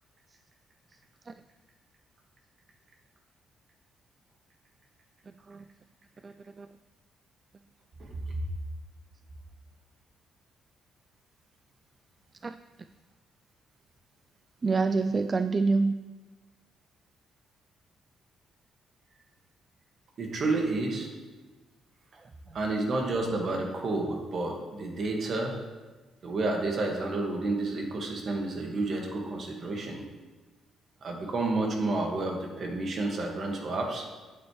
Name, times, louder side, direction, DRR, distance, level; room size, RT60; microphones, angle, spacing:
voice 1, 5.3-5.6 6.2-6.7 12.4-12.6 14.6-16.0 22.2-22.6, right 4 dB, 35° right, 10 dB, 0.3 m, -28 dB
voice 2, 8.0-8.4 20.2-21.1 22.5-25.6 26.2-30.1 31.0-34.1, right 2 dB, 55° right, 1 dB, 1.7 m, -30 dB
8.7 x 8.6 x 3.2 m, 1.3 s
cardioid pair, 90°, 0 cm